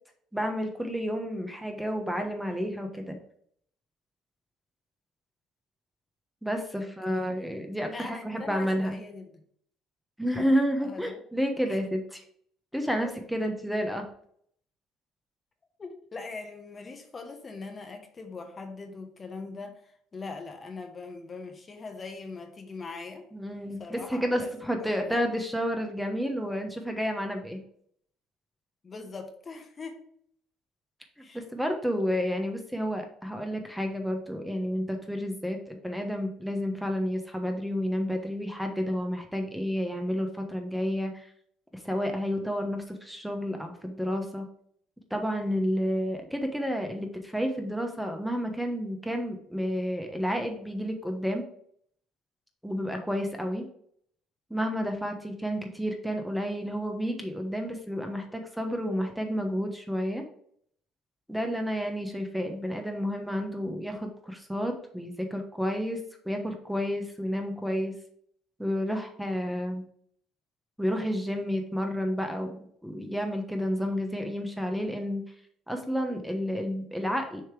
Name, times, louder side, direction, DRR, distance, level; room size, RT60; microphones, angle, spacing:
voice 1, 0.3-3.2 6.4-9.0 10.2-12.2 12.7-14.1 23.3-27.6 31.3-41.3 41.7-44.5 45.1-51.4 52.6-53.7 54.5-60.2 61.3-66.0 66.2-67.9 68.6-69.8 70.8-75.2 75.7-77.4, equal, ahead, 4 dB, 1.1 m, -30 dB
voice 2, 6.8-7.4 7.9-9.4 10.8-11.2 11.7-11.8 13.0-13.1 13.4-13.5 15.8-23.3 23.8-24.5 24.8-25.2 28.8-30.0 31.2-31.4, left 4 dB, 35° left, 5 dB, 1.1 m, -41 dB
6.7 x 3.2 x 4.8 m, 0.64 s
supercardioid pair, 85°, 0 cm